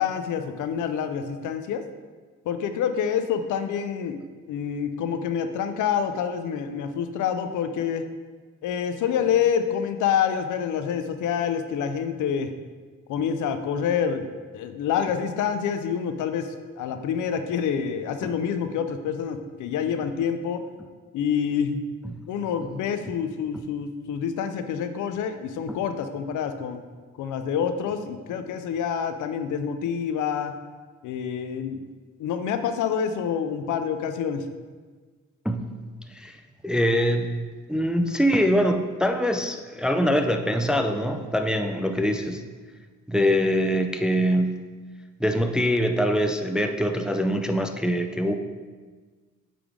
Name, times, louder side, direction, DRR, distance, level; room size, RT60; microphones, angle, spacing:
voice 1, 0.0-1.8 2.4-4.2 4.5-8.0 8.6-12.5 13.1-14.2 14.5-20.6 21.1-21.8 22.3-26.8 27.2-30.5 31.0-31.9 32.2-34.4, left 7 dB, 80° left, 9 dB, 0.6 m, -27 dB
voice 2, 36.6-37.3 37.7-42.4 43.1-44.6 45.2-48.3, equal, 5° right, 6 dB, 0.3 m, -23 dB
8.6 x 3.4 x 3.7 m, 1.4 s
cardioid pair, 90°, 30 cm